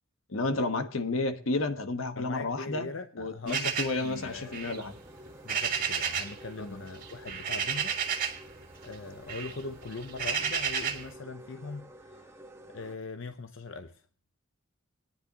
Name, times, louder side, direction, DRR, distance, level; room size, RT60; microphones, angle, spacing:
voice 1, 0.3-2.9 3.2-4.9 6.6-6.7, left 2 dB, 85° left, 8 dB, 1.3 m, -31 dB
voice 2, 2.2-4.7 5.4-7.9 8.8-12.4 12.7-14.0, left 3 dB, 70° left, 8 dB, 0.7 m, -41 dB
sound 1, 3.5-6.4 6.7-8.5 8.8-11.1, right 7 dB, 45° right, 1.9 m, -32 dB
sound 2, 4.1-13.0, equal, 15° right, 1.0 m, -51 dB
19.0 x 10.0 x 2.8 m, 0.41 s
head